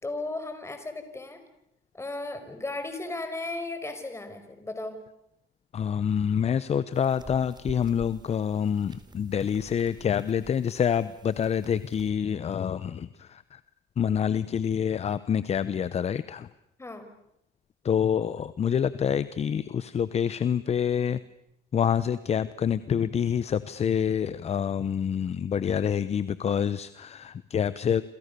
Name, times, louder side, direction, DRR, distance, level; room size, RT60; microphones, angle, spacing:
voice 1, 0.0-1.4 1.9-5.0 16.8-17.1, left 2 dB, 15° left, 8 dB, 5.5 m, -35 dB
voice 2, 5.7-13.6 14.0-16.5 17.8-21.2 21.7-28.0, left 8 dB, 40° left, 16 dB, 0.9 m, -27 dB
sound 1, 6.9-12.1, right 4 dB, 25° right, 3.4 m, -49 dB
28.5 x 27.0 x 6.9 m, 0.78 s
cardioid pair, 110°, 17 cm